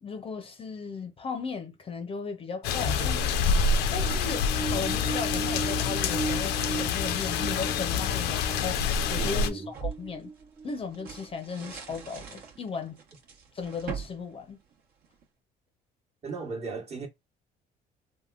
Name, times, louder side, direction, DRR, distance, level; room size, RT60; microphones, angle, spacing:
voice 1, 0.0-3.3 3.9-8.8 9.1-10.3 10.6-13.0 13.5-14.6, left 5 dB, 35° left, 0.5 m, -36 dB
sound 1, 2.6-9.5, left 5 dB, 85° left, 0.5 m, -27 dB
voice 2, 2.7-3.3 9.2-9.7 16.2-17.1, right 3 dB, 40° right, 1.1 m, -37 dB
sound 2, 3.7-11.4, right 4 dB, 15° right, 0.5 m, -37 dB
sound 3, 7.0-8.7 9.2-15.2, right 7 dB, 65° right, 1.1 m, -43 dB
3.4 x 2.1 x 2.3 m
cardioid pair, 110°, 17 cm